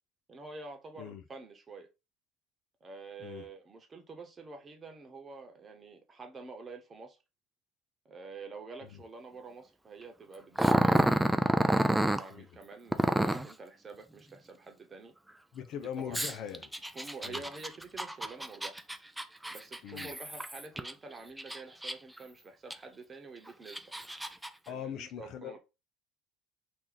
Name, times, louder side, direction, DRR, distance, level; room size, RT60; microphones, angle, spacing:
voice 1, 0.3-1.9 2.8-7.2 8.0-11.2 11.6-15.1 16.0-16.3 16.9-18.8 19.5-23.8 24.7-25.6, right 3 dB, 30° right, 1.0 m, -48 dB
Growling, 10.6-12.2 12.9-13.5 16.1-20.9 21.4-22.2 22.7-22.8 23.5-24.5, right 1 dB, 5° right, 0.4 m, -29 dB
voice 2, 15.5-16.7 17.2-17.4 19.8-20.1 24.7-25.6, left 9 dB, 65° left, 0.6 m, -41 dB
3.0 x 2.6 x 3.9 m
supercardioid pair, 90°, 0 cm